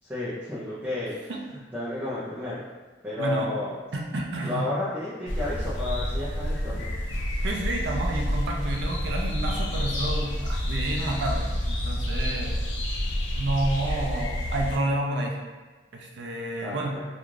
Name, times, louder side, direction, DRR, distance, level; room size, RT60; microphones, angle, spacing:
voice 1, 0.0-1.2 1.5-2.6 3.0-3.7 4.4-6.9 16.6-17.0, left 2 dB, 10° right, -11 dB, 0.4 m, -32 dB
voice 2, 3.2-3.5 3.9-4.7 7.4-12.6 13.4-15.4 15.9-17.0, right 1 dB, 70° right, 0 dB, 0.4 m, -30 dB
sound 1, 5.3-14.8, equal, 85° left, 0.5 m, -29 dB
2.5 x 2.3 x 3.1 m, 1.3 s
head